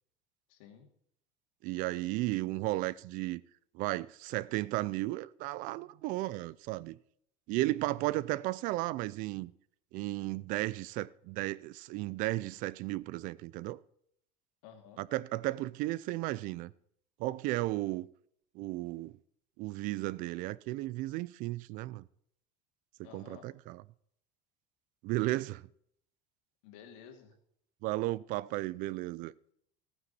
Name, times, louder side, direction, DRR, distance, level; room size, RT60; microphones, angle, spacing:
voice 1, 0.5-0.9 14.6-15.0 23.0-23.5 26.6-27.3, left 8 dB, 85° left, 2.5 m, -53 dB
voice 2, 1.6-3.4 3.7-7.0 7.5-9.5 9.9-13.8 15.0-16.7 17.2-18.1 18.5-19.2 19.6-22.1 23.0-23.8 25.0-25.7 27.8-29.5, right 18 dB, 55° right, 0.5 m, -34 dB
15.0 x 9.6 x 4.2 m
cardioid pair, 160°, 17 cm